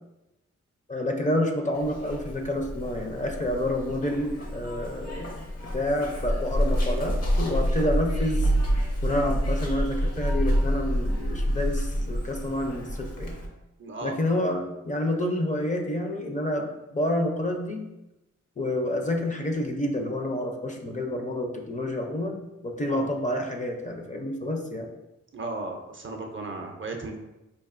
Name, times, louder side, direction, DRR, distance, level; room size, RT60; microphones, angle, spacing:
voice 1, 0.9-5.4 5.7-8.5 9.0-13.4 14.0-17.9 18.6-24.9, left 1 dB, 25° left, 2 dB, 0.5 m, -29 dB
Zipper (clothing), 1.7-13.5, equal, 60° left, 0.8 m, -28 dB
voice 2, 13.8-14.2 22.9-23.1 25.3-27.2, right 2 dB, 40° right, 3 dB, 0.5 m, -35 dB
4.5 x 2.6 x 2.4 m, 0.95 s
wide cardioid pair, 80°, 29 cm